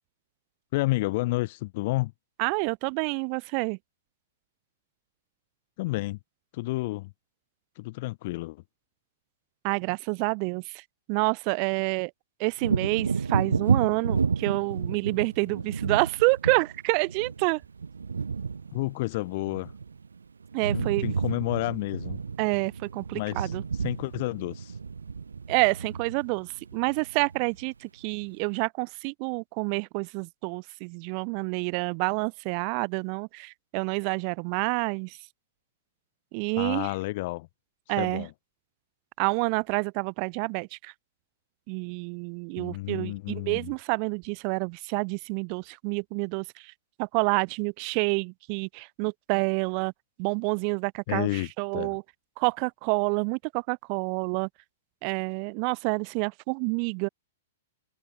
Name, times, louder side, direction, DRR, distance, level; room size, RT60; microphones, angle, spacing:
voice 1, 0.7-2.1 5.8-6.2 6.5-7.1 7.8-8.6 18.7-19.7 20.7-22.2 23.1-23.5 23.8-24.8 36.6-37.5 38.0-38.3 42.6-43.7 51.1-52.0, left 20 dB, 45° left, 0.5 m, -30 dB
voice 2, 2.4-3.8 9.6-10.8 11.1-12.1 12.4-17.6 20.5-21.1 22.4-23.6 25.5-35.2 36.3-36.9 37.9-38.3 39.2-40.9 41.7-46.7 47.0-49.9 50.2-52.0 52.4-54.5 55.0-57.1, right 40 dB or more, 40° right, 1.4 m, -28 dB
Wind / Thunder, 12.6-20.2 20.4-27.7 28.1-28.2, right 5 dB, 70° right, 0.7 m, -31 dB
figure-of-eight pair, 105°, 0 cm